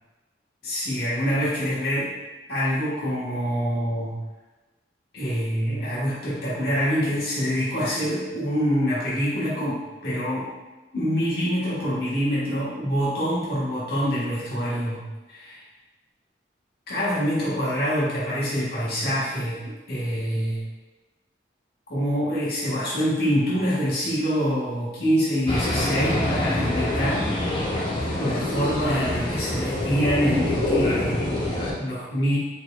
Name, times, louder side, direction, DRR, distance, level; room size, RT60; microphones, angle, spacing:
voice 1, 0.6-2.1 2.5-4.2 5.1-10.5 10.9-15.6 16.9-20.6 21.9-27.3 28.2-32.4, equal, 60° left, -9 dB, 1.4 m, -25 dB
sound 1, 25.5-31.7, left 1 dB, 30° left, 0.7 m, -25 dB
4.3 x 4.1 x 2.4 m, 1.1 s
head